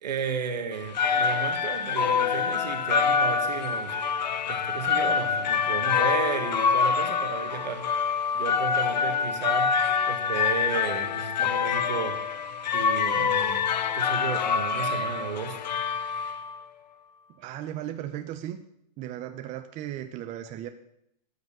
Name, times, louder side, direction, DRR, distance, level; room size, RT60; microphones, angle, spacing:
voice 1, 0.0-7.9 8.3-12.4 12.7-15.6, right 6 dB, 85° right, 6 dB, 2.3 m, -34 dB
sound 1, 0.7-16.6, left 6 dB, 90° left, 1.0 m, -26 dB
voice 2, 17.3-18.6 19.0-20.7, right 12 dB, 35° right, 8 dB, 0.9 m, -36 dB
13.5 x 5.3 x 9.1 m, 0.75 s
hypercardioid pair, 125°, 21 cm